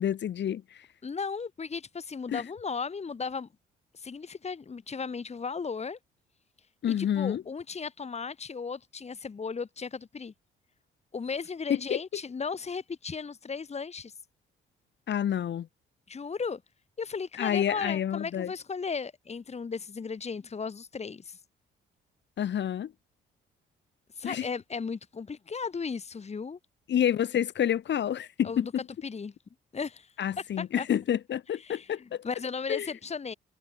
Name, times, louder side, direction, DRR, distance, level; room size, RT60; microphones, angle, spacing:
voice 1, 0.0-0.9 2.3-2.4 6.8-7.4 11.7-12.0 15.1-15.7 17.4-18.5 22.4-22.9 24.2-24.5 26.9-28.7 30.2-32.2 32.7-32.9, left 10 dB, 65° left, 5.0 m, -28 dB
voice 2, 1.0-3.5 3.9-6.0 6.9-10.3 11.1-14.2 16.1-16.6 17.0-21.4 24.1-26.6 28.4-29.3 29.7-30.1 30.6-30.9 31.6-31.9 32.2-33.3, left 5 dB, 35° left, 2.5 m, -36 dB
cardioid pair, 90°, 20 cm